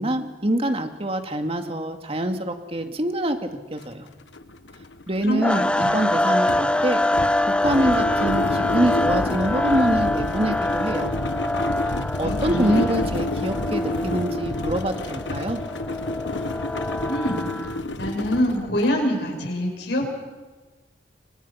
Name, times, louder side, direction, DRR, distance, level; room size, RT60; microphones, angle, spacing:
voice 1, 0.0-4.1 5.1-7.0 7.5-11.1 12.2-15.6, right 1 dB, 35° right, 6 dB, 2.2 m, -25 dB
sound 1, 3.8-3.9 4.2-19.0, left 2 dB, 85° left, 1.3 m, -29 dB
voice 2, 5.2-5.9 12.2-12.9 17.1-20.1, equal, 65° left, 1 dB, 6.6 m, -26 dB
sound 2, 5.4-17.8, left 1 dB, 5° left, 0.7 m, -25 dB
28.5 x 24.0 x 5.8 m, 1.3 s
head